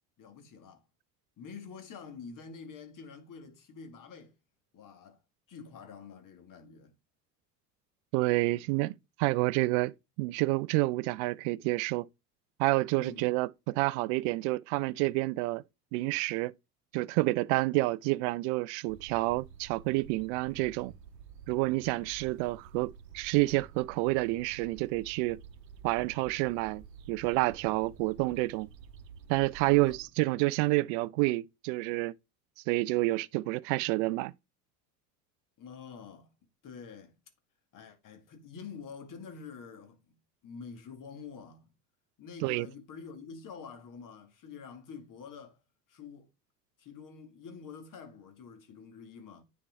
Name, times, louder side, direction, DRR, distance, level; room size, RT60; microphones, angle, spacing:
voice 1, 0.2-0.8 1.4-4.3 4.7-5.2 5.5-6.9 13.0-13.3 29.6-29.9 35.6-36.3 36.6-37.1 37.7-40.1 40.4-41.7 42.2-45.6 45.9-46.3 46.8-49.4, left 6 dB, 40° left, 2.0 m, -47 dB
voice 2, 8.1-9.9 10.2-12.1 12.6-15.6 15.9-16.5 16.9-20.9 21.5-25.4 25.8-28.7 29.3-32.1 32.7-34.3 42.4-42.7, right 21 dB, 50° right, 0.5 m, -29 dB
sound 1, 18.9-30.1, right 7 dB, 80° right, 0.8 m, -51 dB
9.6 x 4.4 x 3.6 m
figure-of-eight pair, 70°, 49 cm